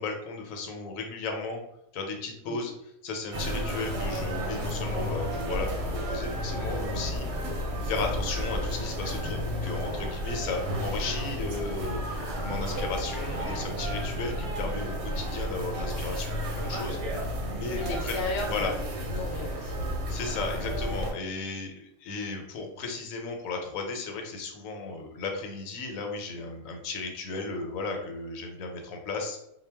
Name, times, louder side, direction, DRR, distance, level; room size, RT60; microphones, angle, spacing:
voice 1, 0.0-1.6 1.9-2.7 3.0-7.5 7.8-18.1 18.5-18.7 20.1-29.4, left 3 dB, 80° left, 3 dB, 1.0 m, -35 dB
sound 1, 3.3-21.1, equal, 65° right, 0.8 m, -32 dB
voice 2, 17.7-18.8 19.1-19.9, left 2 dB, 60° left, 1 dB, 0.7 m, -34 dB
2.2 x 2.1 x 3.2 m, 0.80 s
omnidirectional pair, 1.4 m